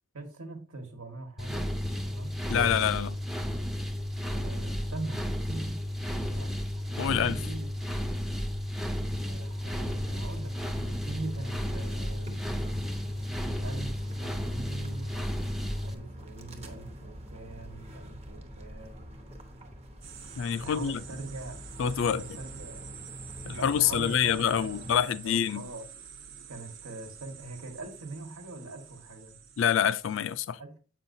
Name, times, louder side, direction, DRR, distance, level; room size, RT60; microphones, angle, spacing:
voice 1, 0.1-1.7 2.0-2.4 4.3-5.8 6.3-6.5 6.9-7.8 9.2-12.3 13.6-15.4 15.8-19.1 20.6-21.6 21.9-22.9 23.3-25.8 26.5-29.3 30.6-30.8, right 2 dB, 85° right, 1.5 m, -42 dB
sound 1, 1.4-15.9, equal, ahead, 0.4 m, -33 dB
voice 2, 2.5-3.2 7.0-7.4 20.4-21.0 21.8-22.2 23.4-25.7 29.6-30.6, left 8 dB, 65° left, 0.3 m, -26 dB
sound 2, 9.8-25.0, equal, 30° right, 0.9 m, -46 dB
sound 3, 20.0-30.4, right 7 dB, 60° right, 0.8 m, -48 dB
7.8 x 5.6 x 2.6 m
head